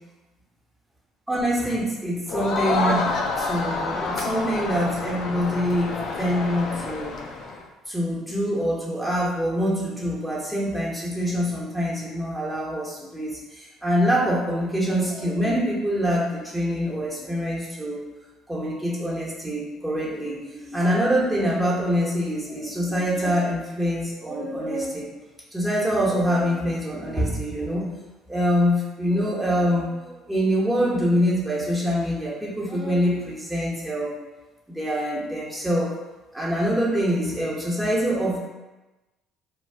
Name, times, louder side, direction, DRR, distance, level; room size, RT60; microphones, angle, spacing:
voice 1, 1.3-7.1 7.9-13.4 13.8-18.0 18.5-25.1 25.5-27.9 28.3-34.1 34.7-35.9 36.3-38.4, equal, 10° right, -5 dB, 1.0 m, -25 dB
Crowd, 2.3-7.6, left 3 dB, 60° left, 0.4 m, -28 dB
2.6 x 2.2 x 3.4 m, 1.1 s
supercardioid pair, 75°, 0 cm